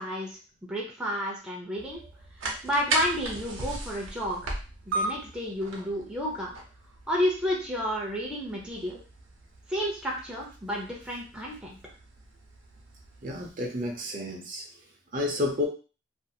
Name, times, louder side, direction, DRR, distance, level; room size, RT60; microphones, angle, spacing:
voice 1, 0.0-2.0 2.6-4.5 4.9-6.6 7.1-9.0 9.7-11.8, equal, 5° right, -3 dB, 0.6 m, -31 dB
sound 1, 1.8-13.5, right 2 dB, 85° right, 0.7 m, -37 dB
voice 2, 13.2-14.7 15.1-15.7, left 2 dB, 45° right, 1 dB, 0.6 m, -30 dB
2.5 x 2.4 x 2.7 m, 0.35 s
head